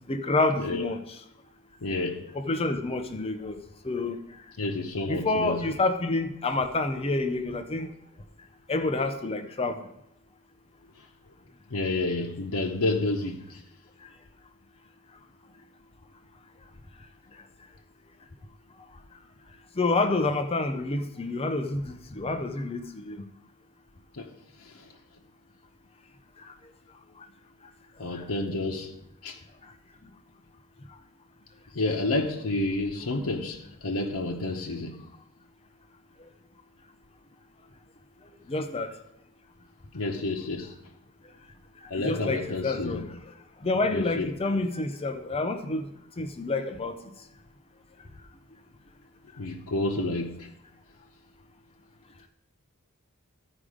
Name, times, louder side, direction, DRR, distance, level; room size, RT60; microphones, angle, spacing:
voice 1, 0.1-1.0 2.3-3.6 3.8-4.2 5.1-7.9 8.7-9.8 19.8-23.2 33.2-33.3 38.5-38.9 42.0-43.0 43.6-45.9 46.2-46.9, left 2 dB, 25° left, 0.5 m, -28 dB
voice 2, 1.8-2.3 4.6-5.7 11.7-13.6 24.2-24.3 24.6-24.9 28.0-29.0 29.2-29.4 31.7-35.0 39.9-40.7 41.9-43.1 43.9-44.3 49.4-50.5, left 2 dB, 85° left, 0.9 m, -30 dB
13.0 x 5.0 x 4.9 m
head